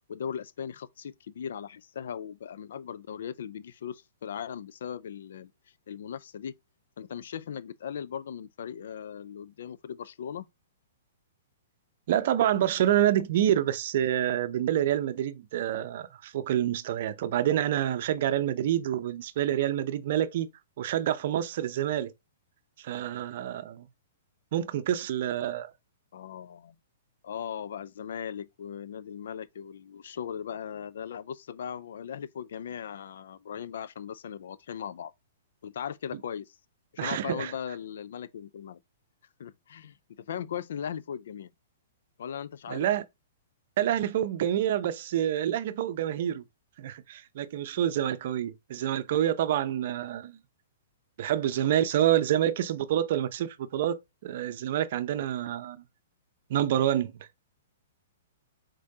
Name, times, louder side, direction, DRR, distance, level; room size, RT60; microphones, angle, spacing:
voice 1, 0.1-5.5 5.9-6.5 7.0-10.5 26.1-26.8 27.2-35.1 35.6-36.6 36.9-38.8 39.4-41.5 42.2-42.9, left 8 dB, 65° left, 0.4 m, -38 dB
voice 2, 12.1-20.5 20.8-22.1 22.8-23.9 24.5-25.7 37.0-37.5 42.7-43.0 43.8-46.4 46.8-50.4 51.2-55.8 56.5-57.1, right 11 dB, 55° right, 0.5 m, -27 dB
5.1 x 3.6 x 2.8 m
hypercardioid pair, 120°, 0 cm